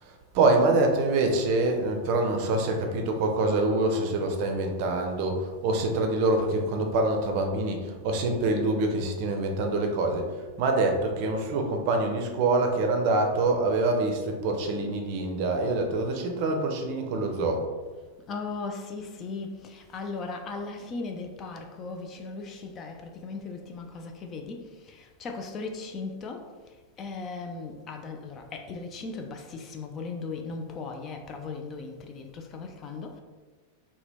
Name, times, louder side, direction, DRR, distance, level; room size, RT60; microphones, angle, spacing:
voice 1, 0.0-17.6, right 2 dB, 45° right, 0.5 m, -25 dB
voice 2, 18.3-26.5 27.0-33.2, left 4 dB, 30° left, 0.3 m, -37 dB
2.8 x 2.1 x 3.4 m
figure-of-eight pair, 90°, 0 cm